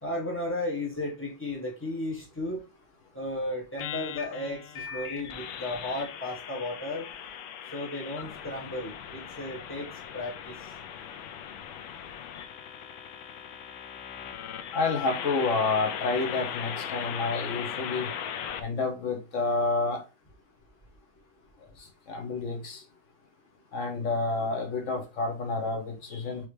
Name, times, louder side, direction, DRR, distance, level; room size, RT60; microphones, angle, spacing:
voice 1, 0.0-2.6 3.1-7.1 7.7-10.7, left 1 dB, 15° left, 0.4 m, -34 dB
sound 1, 3.8-18.6, left 8 dB, 75° left, 1.3 m, -38 dB
voice 2, 14.7-18.1 18.6-20.0 22.1-22.8 23.7-26.5, left 3 dB, 50° left, 1.0 m, -29 dB
4.6 x 3.4 x 3.2 m
omnidirectional pair, 2.3 m